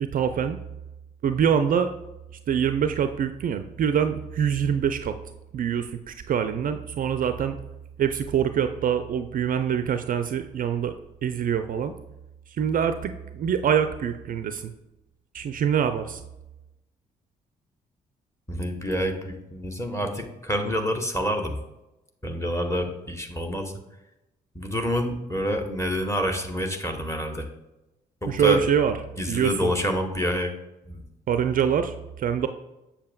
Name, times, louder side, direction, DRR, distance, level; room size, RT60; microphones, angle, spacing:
voice 1, 0.0-0.6 1.2-1.9 2.5-5.1 5.5-7.6 8.0-10.9 11.2-11.9 12.6-14.7 15.3-16.2 28.3-28.9 29.3-29.7 31.3-32.5, right 8 dB, 40° right, 9 dB, 0.4 m, -24 dB
voice 2, 18.5-21.6 22.2-23.7 24.5-27.5 28.2-28.7 29.2-30.5 30.9-31.0, equal, 15° left, 4 dB, 1.2 m, -27 dB
7.4 x 6.9 x 2.3 m, 0.96 s
figure-of-eight pair, 40°, 21 cm